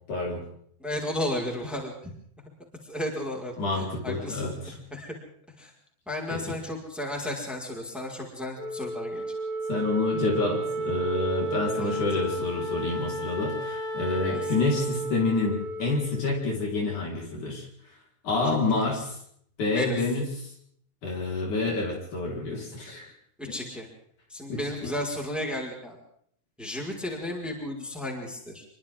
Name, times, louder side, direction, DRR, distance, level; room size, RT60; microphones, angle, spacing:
voice 1, 0.1-0.4 3.6-4.8 6.3-6.6 9.7-17.7 18.2-19.2 19.6-20.5 21.0-23.1 24.5-24.6, left 3 dB, 55° left, -2 dB, 6.2 m, -28 dB
voice 2, 0.8-2.1 2.8-5.1 5.6-5.7 6.1-9.2 11.7-12.0 14.2-14.5 18.7-18.9 19.7-20.0 23.4-23.9 24.3-26.0 26.6-28.6, left 1 dB, ahead, -1 dB, 5.1 m, -34 dB
Wind instrument woodwind instrument, 8.6-17.1, right 1 dB, 85° left, 4.9 m, -33 dB
28.5 x 24.0 x 3.8 m, 0.66 s
omnidirectional pair, 4.1 m